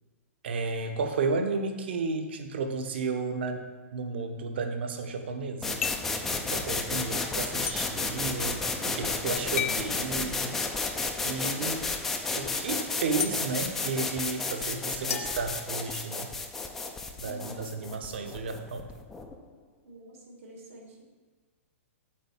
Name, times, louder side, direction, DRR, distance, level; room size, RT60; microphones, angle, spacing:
voice 1, 0.4-3.6 3.9-5.8 6.3-10.6 11.2-11.9 12.3-16.3 17.2-18.9, right 4 dB, 50° right, 6 dB, 1.0 m, -33 dB
sound 1, 5.6-19.3, left 3 dB, 5° left, 0.3 m, -32 dB
sound 2, 5.8-6.2 7.7-7.8 9.6-9.9 11.4-11.6 13.2-13.3 15.1-16.2, left 9 dB, 70° left, 0.4 m, -34 dB
voice 2, 17.2-17.8 19.8-21.0, equal, 75° right, -1 dB, 2.7 m, -48 dB
8.7 x 4.3 x 7.2 m, 1.4 s
hypercardioid pair, 180°, 8 cm